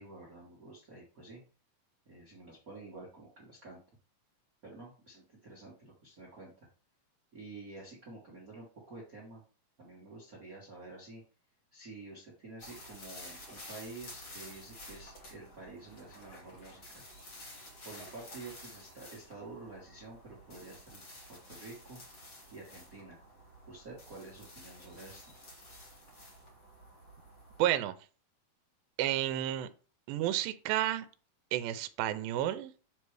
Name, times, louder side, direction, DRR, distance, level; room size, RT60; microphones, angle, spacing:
voice 1, 0.0-1.4 2.0-3.8 4.6-6.5 7.3-9.4 9.8-11.2 11.7-16.8 17.8-21.0 21.5-22.0 22.5-23.2 23.7-25.3, right 3 dB, 65° right, -4 dB, 0.8 m, -49 dB
sound 1, 12.6-27.7, left 1 dB, 40° left, 1.5 m, -51 dB
voice 2, 27.6-28.0 29.0-29.7 30.1-31.1 31.5-32.7, right 13 dB, 80° right, 11 dB, 2.2 m, -31 dB
7.2 x 3.2 x 4.7 m, 0.38 s
omnidirectional pair, 4.2 m